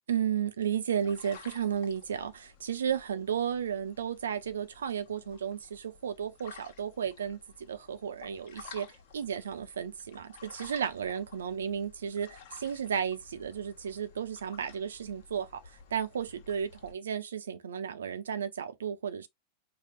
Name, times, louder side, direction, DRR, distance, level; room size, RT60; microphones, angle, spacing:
voice 1, 0.1-7.4 7.7-8.9 9.1-15.5 15.9-19.3, right 8 dB, 65° right, 0.7 m, -33 dB
sound 1, 1.0-16.9, left 6 dB, 50° left, 1.2 m, -54 dB
4.8 x 2.3 x 4.0 m
figure-of-eight pair, 90°, 0 cm